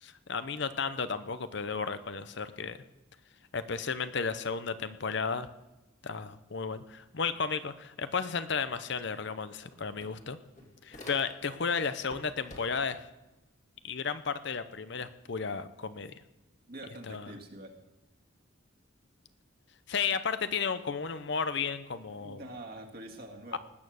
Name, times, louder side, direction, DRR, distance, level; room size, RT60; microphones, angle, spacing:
voice 1, 0.0-2.8 3.5-5.5 6.0-10.4 10.8-13.1 13.8-16.1 17.1-17.3 19.9-22.4 23.5-23.6, left 5 dB, 55° left, 12 dB, 0.7 m, -33 dB
sound 1, 9.7-11.6 12.0-13.0, left 1 dB, 35° left, 2.1 m, -50 dB
voice 2, 16.7-17.8 22.1-23.6, right 1 dB, 50° right, 2 dB, 1.9 m, -45 dB
19.0 x 8.7 x 6.4 m, 1.0 s
head